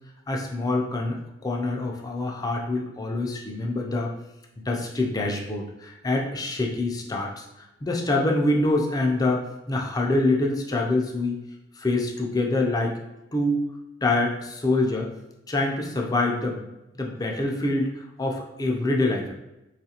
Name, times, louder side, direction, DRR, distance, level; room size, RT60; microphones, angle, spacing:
voice 1, 0.3-1.2 1.4-4.1 4.7-7.4 7.8-11.4 11.8-13.0 13.3-13.6 14.0-15.1 15.5-16.6 16.9-19.3, left 2 dB, 20° left, 1 dB, 0.4 m, -25 dB
3.6 x 2.4 x 2.8 m, 0.95 s
head